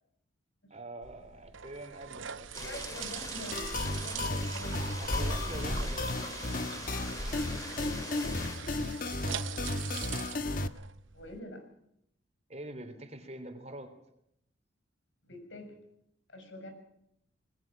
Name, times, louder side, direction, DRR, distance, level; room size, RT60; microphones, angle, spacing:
voice 1, 0.7-3.0 4.8-6.7 9.3-9.5 12.5-13.9, right 1 dB, 35° right, 7 dB, 3.5 m, -45 dB
sound 1, 1.0-11.4, right 9 dB, 85° right, 0.8 m, -43 dB
sound 2, 2.5-8.6, left 1 dB, 20° left, 4.2 m, -39 dB
voice 2, 2.6-4.8 7.8-8.4 11.1-11.6 15.2-15.8 16.3-16.7, left 1 dB, 75° left, 6 dB, 6.6 m, -46 dB
sound 3, 3.5-10.7, left 2 dB, 45° left, 1.2 m, -34 dB
26.5 x 20.5 x 6.1 m, 0.75 s
head